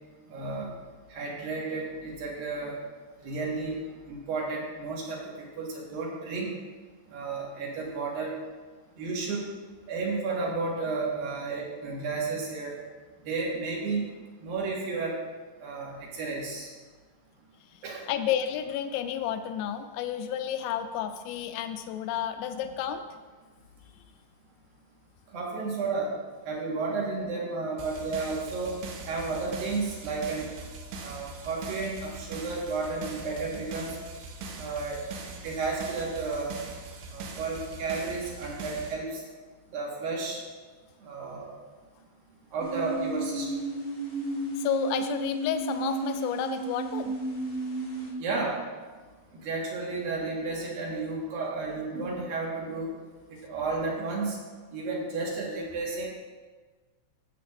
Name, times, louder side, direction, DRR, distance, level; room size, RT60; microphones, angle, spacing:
voice 1, 0.3-0.7 1.1-2.8 3.2-3.8 4.1-6.5 7.1-8.3 9.0-9.5 9.9-12.8 13.2-14.1 14.4-15.2 15.6-16.7 17.8-18.0 25.3-26.1 26.5-28.8 29.1-30.5 31.0-34.0 34.6-35.0 35.4-36.5 37.1-39.2 39.7-40.4 41.0-41.5 42.5-43.6 48.2-48.6 49.3-52.9 53.4-54.4 54.7-56.2, right 3 dB, 65° right, -3 dB, 3.1 m, -32 dB
voice 2, 18.1-23.0 44.6-47.1, left 9 dB, 85° left, 8 dB, 2.1 m, -31 dB
sound 1, 27.8-38.9, right 3 dB, 90° right, 3.0 m, -41 dB
sound 2, 42.6-48.1, right 2 dB, 65° left, 0.5 m, -33 dB
13.5 x 7.8 x 2.6 m, 1.4 s
omnidirectional pair, 4.7 m